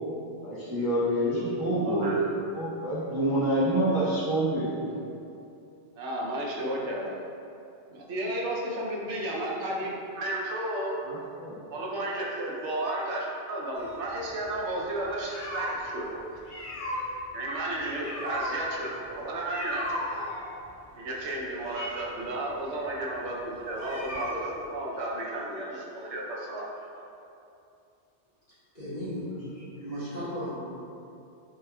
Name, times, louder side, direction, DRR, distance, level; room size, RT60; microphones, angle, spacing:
voice 1, 0.4-2.1 2.5-4.7 11.0-11.6 29.8-30.0, right 1 dB, 25° right, -13 dB, 0.6 m, -27 dB
voice 2, 1.8-2.2 6.0-7.2 7.9-11.0 11.7-16.3 17.3-19.9 21.0-26.6, right 1 dB, 80° right, -3 dB, 0.9 m, -33 dB
sound 1, 13.7-15.9 16.3-24.7, left 1 dB, 75° left, 1.1 m, -37 dB
voice 3, 28.7-30.6, equal, 35° left, -13 dB, 1.6 m, -36 dB
4.2 x 3.4 x 2.2 m, 2.7 s
omnidirectional pair, 1.2 m